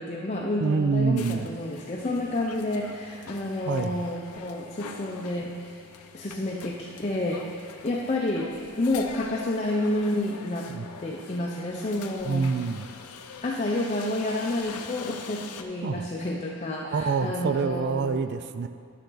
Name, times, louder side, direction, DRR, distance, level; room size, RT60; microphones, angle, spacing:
voice 1, 0.0-5.5 6.1-7.4 7.8-8.5 8.8-10.7 11.0-12.5 13.4-18.2, left 1 dB, 30° left, -2 dB, 0.6 m, -29 dB
voice 2, 0.6-1.5 3.7-3.9 10.8-10.9 12.3-12.8 15.8-16.1 16.9-18.7, right 4 dB, 50° right, 11 dB, 0.4 m, -26 dB
sound 1, 1.2-15.6, left 6 dB, 85° left, 0.6 m, -44 dB
11.5 x 6.5 x 3.9 m, 2.4 s
head